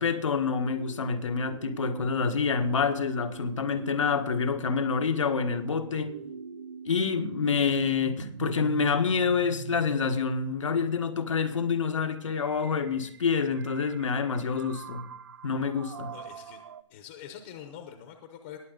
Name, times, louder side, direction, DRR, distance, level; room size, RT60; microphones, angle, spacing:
voice 1, 0.0-6.2 6.8-15.1 15.4-16.1, left 5 dB, 90° left, 1.6 m, -27 dB
sound 1, 0.6-16.8, right 6 dB, 50° right, 0.6 m, -43 dB
voice 2, 16.0-16.6 16.9-18.6, left 9 dB, 20° left, 0.8 m, -45 dB
20.0 x 7.9 x 4.0 m
hypercardioid pair, 175°, 16 cm